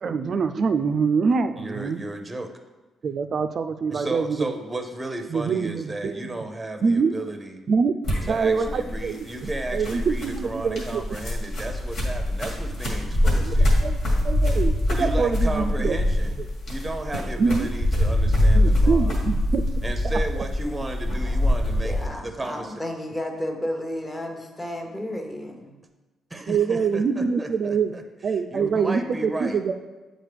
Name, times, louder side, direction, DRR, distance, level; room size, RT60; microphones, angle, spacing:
voice 1, 0.0-2.0 3.0-4.5 5.3-6.2 6.8-7.1 7.7-7.9 8.3-9.2 9.4-11.0 13.4-16.0 17.4-17.7 18.5-19.6 20.4-20.5 26.5-27.9 28.2-29.7, right 5 dB, 50° right, 8 dB, 0.3 m, -25 dB
voice 2, 1.6-2.5 3.9-7.6 8.3-13.8 14.9-16.3 16.7-19.1 19.8-22.7 26.3-28.0 28.5-29.6, right 2 dB, 15° right, 6 dB, 0.6 m, -34 dB
sound 1, 8.0-22.1, left 1 dB, 65° left, 1.9 m, -23 dB
voice 3, 21.8-25.8, left 1 dB, 15° left, 3 dB, 0.9 m, -32 dB
8.1 x 3.8 x 3.4 m, 1.2 s
cardioid pair, 90°, 0 cm